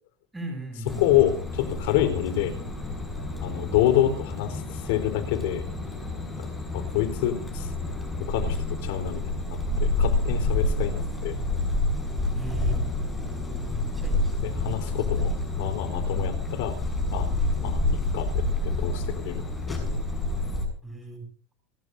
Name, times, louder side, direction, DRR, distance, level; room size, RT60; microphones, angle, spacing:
voice 1, 0.3-1.1 11.3-11.5 12.3-12.8 13.7-14.2 14.5-15.3 20.8-21.2, right 2 dB, 10° right, 3 dB, 7.8 m, -38 dB
sound 1, 0.9-20.6, left 2 dB, 10° left, 6.6 m, -29 dB
voice 2, 1.0-2.5 3.4-5.6 6.2-6.5 6.7-7.7 8.2-11.4 14.4-16.7 17.1-17.8 18.1-20.0, left 12 dB, 70° left, 7 dB, 4.1 m, -27 dB
30.0 x 13.0 x 2.7 m, 0.40 s
supercardioid pair, 145°, 0 cm